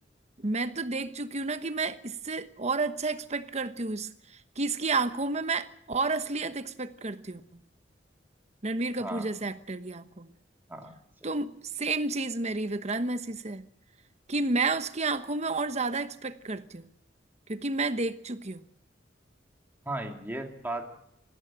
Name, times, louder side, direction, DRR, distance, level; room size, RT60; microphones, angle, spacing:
voice 1, 0.4-4.1 4.6-7.6 8.6-10.3 11.2-11.5 11.8-13.6 14.3-16.9 17.5-18.7, right 3 dB, 40° right, 1.1 m, -31 dB
voice 2, 9.0-9.3 10.7-11.0 19.9-21.0, right 2 dB, 10° right, 2.5 m, -36 dB
20.0 x 15.5 x 9.0 m
head